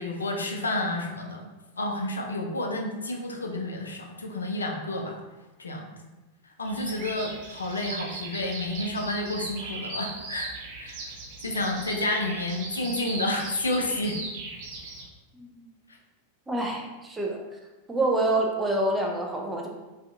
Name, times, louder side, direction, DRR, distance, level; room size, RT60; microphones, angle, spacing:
voice 1, 0.0-1.5 1.8-5.2 5.6-5.9 6.6-10.5 10.8-11.1 11.4-14.2, left 1 dB, 75° left, 2 dB, 0.3 m, -30 dB
Bird vocalization bird call bird song, 6.6-15.0, right 3 dB, 40° right, 0.7 m, -38 dB
voice 2, 16.5-17.4 17.9-19.7, right 2 dB, 10° right, -1 dB, 0.4 m, -27 dB
2.4 x 2.3 x 2.4 m, 1.1 s
figure-of-eight pair, 90°, 0 cm